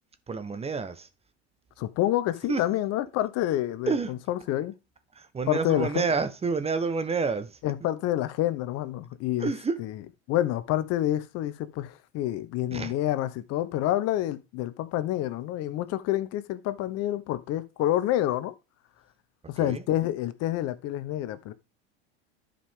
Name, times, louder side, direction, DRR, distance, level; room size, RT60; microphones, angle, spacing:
voice 1, 0.3-1.1 2.5-2.6 3.9-4.1 5.1-7.6 9.4-9.8 12.7-12.9 19.6-19.8, right 4 dB, 20° right, 1.0 m, -29 dB
voice 2, 1.8-4.7 5.5-6.0 7.6-9.5 9.8-10.0 10.3-18.5 19.5-21.5, left 13 dB, 50° left, 0.9 m, -28 dB
11.5 x 5.1 x 3.6 m
hypercardioid pair, 95°, 32 cm